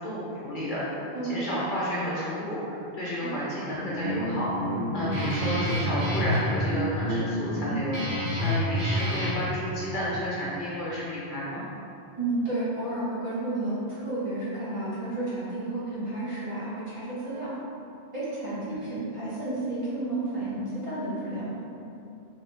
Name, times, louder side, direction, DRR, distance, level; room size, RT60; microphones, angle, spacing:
voice 1, 0.0-11.6 18.7-18.9, equal, 55° left, -8 dB, 0.7 m, -32 dB
Guitar, 3.7-9.5, equal, 85° right, 1.0 m, -28 dB
voice 2, 12.2-17.5 18.1-21.6, right 2 dB, 30° right, -12 dB, 0.8 m, -31 dB
3.1 x 2.6 x 3.0 m, 2.7 s
omnidirectional pair, 1.2 m